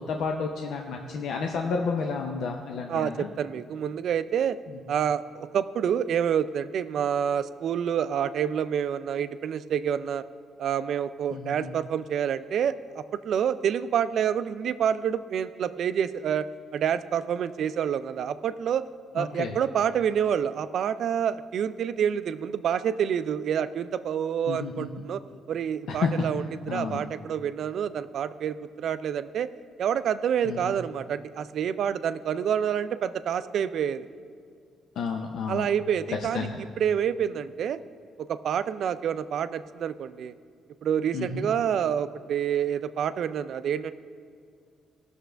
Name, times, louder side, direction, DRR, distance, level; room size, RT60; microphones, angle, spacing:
voice 1, 0.1-3.3 4.7-4.8 11.3-11.7 19.2-19.5 24.5-24.9 25.9-26.2 26.7-27.0 30.4-30.7 35.0-35.7 36.3-36.6 41.1-41.5, left 5 dB, 75° left, 2 dB, 0.7 m, -31 dB
voice 2, 2.9-4.6 4.9-10.2 10.6-16.5 16.7-18.8 19.1-25.2 25.5-29.5 29.8-34.1 35.5-37.8 38.2-40.3 40.8-43.9, right 8 dB, 65° right, 13 dB, 0.4 m, -28 dB
17.0 x 6.5 x 3.4 m, 2.2 s
cardioid pair, 90°, 0 cm